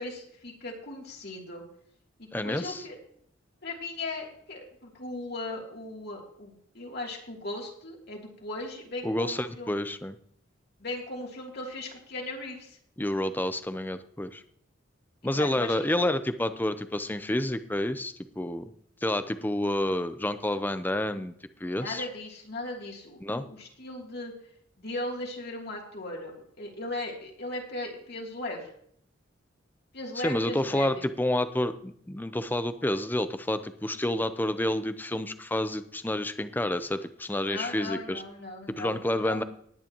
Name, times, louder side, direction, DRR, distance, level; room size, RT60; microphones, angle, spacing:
voice 1, 0.0-1.6 2.2-3.0 3.6-9.7 10.8-12.7 15.2-16.1 21.8-24.3 24.8-28.7 29.9-31.1 37.4-39.4, left 2 dB, 60° left, -1 dB, 3.0 m, -38 dB
voice 2, 2.3-2.9 9.0-10.2 13.0-14.4 15.2-18.7 19.0-21.3 21.6-22.1 23.2-23.4 30.2-38.2 38.7-39.4, left 1 dB, 10° left, 11 dB, 0.6 m, -29 dB
19.0 x 9.6 x 3.0 m, 0.64 s
head